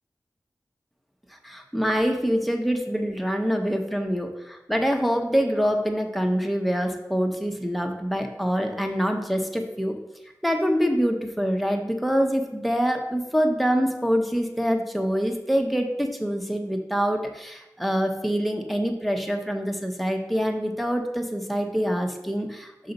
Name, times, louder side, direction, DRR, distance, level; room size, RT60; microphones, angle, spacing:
voice 1, 1.4-10.0 10.4-22.9, equal, ahead, 4 dB, 0.9 m, -25 dB
5.6 x 3.9 x 5.3 m, 0.98 s
wide cardioid pair, 50°, 7 cm